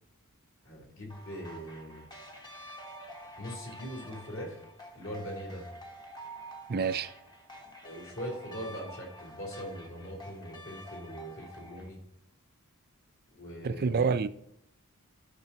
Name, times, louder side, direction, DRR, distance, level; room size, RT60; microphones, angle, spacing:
voice 1, 0.6-2.1 3.4-4.6 4.9-5.7 7.8-12.0 13.3-14.1, equal, 60° left, 3.9 m, -41 dB
sound 1, 1.1-11.9, equal, 20° left, 1.0 m, -48 dB
voice 2, 6.7-7.1 13.6-14.3, right 5 dB, 45° right, 0.4 m, -28 dB
15.0 x 6.1 x 2.9 m
head